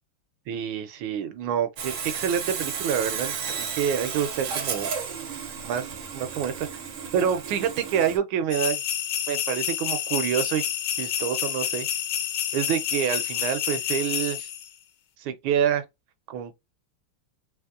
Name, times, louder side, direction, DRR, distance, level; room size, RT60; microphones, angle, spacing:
voice 1, 0.5-4.9 5.6-5.9 6.1-6.7 7.1-8.8 9.3-10.6 11.0-11.9 12.5-14.5 15.2-15.8 16.3-16.6, right 8 dB, 80° right, 1.3 m, -27 dB
Sawing, 1.8-8.2, right 6 dB, 60° right, 0.8 m, -33 dB
sound 1, 8.5-14.7, left 10 dB, 75° left, 1.4 m, -29 dB
3.4 x 3.0 x 2.3 m
omnidirectional pair, 2.3 m